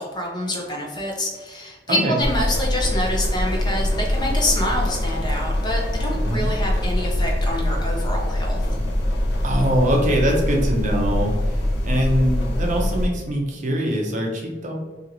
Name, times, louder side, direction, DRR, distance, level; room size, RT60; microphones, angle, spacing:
voice 1, 0.0-8.6, left 1 dB, 25° left, -1 dB, 0.6 m, -26 dB
voice 2, 1.9-2.2 6.2-6.5 9.4-14.8, equal, 45° right, 0 dB, 0.6 m, -23 dB
sound 1, 2.2-13.1, left 1 dB, 70° left, 0.6 m, -23 dB
2.8 x 2.8 x 2.6 m, 1.3 s
head